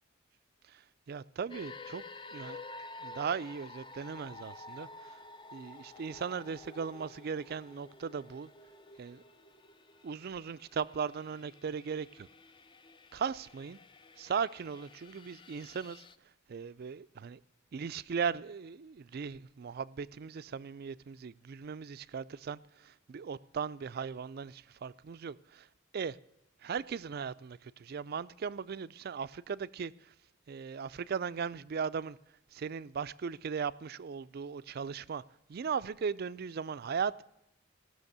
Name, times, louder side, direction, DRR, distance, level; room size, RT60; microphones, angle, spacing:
voice 1, 0.7-2.0 2.3-2.6 3.0-5.2 5.5-8.5 9.0-9.2 10.0-12.3 13.1-13.8 14.2-16.0 16.5-17.4 17.7-25.7 25.9-26.2 26.6-30.1 30.5-32.2 32.5-35.2 35.5-37.2, right 6 dB, 50° right, 0.4 m, -38 dB
sound 1, 1.5-16.2, left 3 dB, 25° left, 0.4 m, -51 dB
17.0 x 6.3 x 6.6 m
head